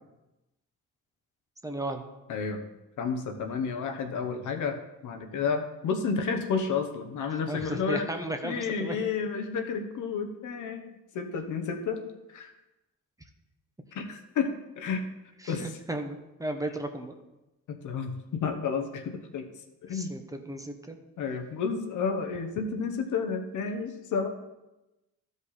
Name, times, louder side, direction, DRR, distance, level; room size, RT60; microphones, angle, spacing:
voice 1, 1.6-2.1 7.5-9.1 15.4-17.1 19.9-21.0, right 1 dB, 10° right, 5 dB, 0.9 m, -35 dB
voice 2, 2.3-2.6 3.0-8.1 8.4-10.8 11.1-12.0 12.3-12.5 13.9-15.1 15.5-15.7 17.7-19.5 19.8-20.1 21.2-24.3, left 5 dB, 70° left, 5 dB, 1.2 m, -31 dB
12.5 x 5.2 x 4.2 m, 0.99 s
cardioid pair, 100°, 31 cm